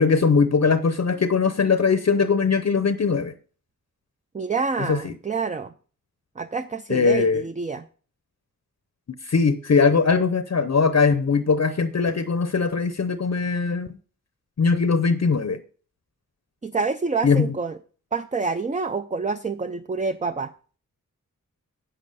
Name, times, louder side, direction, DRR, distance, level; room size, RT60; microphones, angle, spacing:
voice 1, 0.0-3.3 4.8-5.1 6.9-7.4 9.2-13.9 14.6-15.6 17.2-17.6, left 5 dB, 50° left, 11 dB, 0.6 m, -20 dB
voice 2, 4.3-5.7 6.4-7.8 16.6-17.8 18.1-20.5, right 4 dB, 25° right, 9 dB, 0.4 m, -27 dB
8.6 x 7.5 x 5.3 m, 0.41 s
wide cardioid pair, 90°, 33 cm